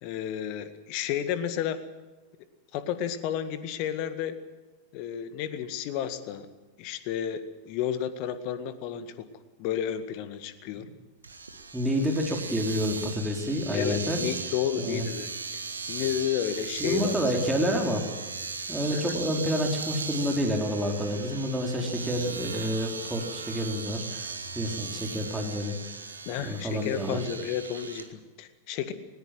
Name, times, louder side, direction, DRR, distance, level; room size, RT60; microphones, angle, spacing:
voice 1, 0.0-1.8 2.7-4.4 4.9-6.5 6.8-7.4 7.7-9.3 9.6-10.8 13.7-15.3 15.9-17.4 18.9-19.2 26.3-28.9, left 10 dB, 45° left, 11 dB, 1.8 m, -32 dB
Domestic sounds home sounds, 11.2-28.1, right 4 dB, 75° right, 1.8 m, -38 dB
voice 2, 11.7-14.2 14.8-15.1 16.8-18.1 18.7-25.7 26.4-27.2, equal, 5° right, 0 dB, 4.5 m, -29 dB
20.0 x 19.0 x 7.9 m, 1.2 s
figure-of-eight pair, 90°, 0 cm